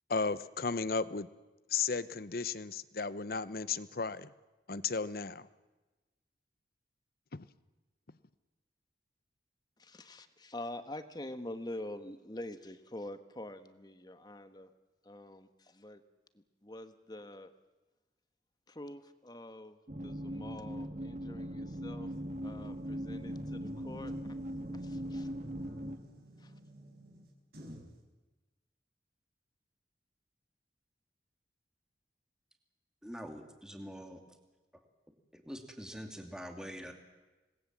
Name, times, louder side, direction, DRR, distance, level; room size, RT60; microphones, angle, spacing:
voice 1, 0.1-1.3 1.7-4.3 4.7-5.5 7.3-7.5, left 5 dB, 55° left, 15 dB, 0.8 m, -34 dB
voice 2, 9.8-14.7 15.0-16.0 16.3-17.5 18.7-22.1 22.4-24.4 24.7-25.3 26.4-26.6, left 1 dB, 25° left, 10 dB, 1.3 m, -46 dB
sound 1, 19.9-26.0, equal, 45° right, 1.6 m, -40 dB
sound 2, 22.2-28.0, equal, 60° right, 4.9 m, -54 dB
voice 3, 33.0-34.4 35.3-36.9, equal, 5° right, 4 dB, 2.5 m, -45 dB
26.5 x 20.0 x 7.5 m, 1.1 s
head